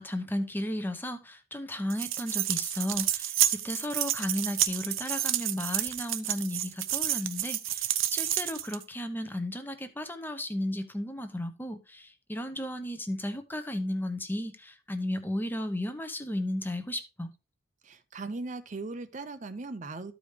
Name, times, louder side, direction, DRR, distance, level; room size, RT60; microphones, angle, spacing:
voice 1, 0.0-17.3, left 1 dB, 10° left, 0.8 m, -34 dB
sound 1, 1.9-8.8, right 12 dB, 75° right, 0.8 m, -30 dB
voice 2, 17.8-20.1, right 3 dB, 35° right, 0.6 m, -38 dB
13.0 x 5.0 x 3.3 m
head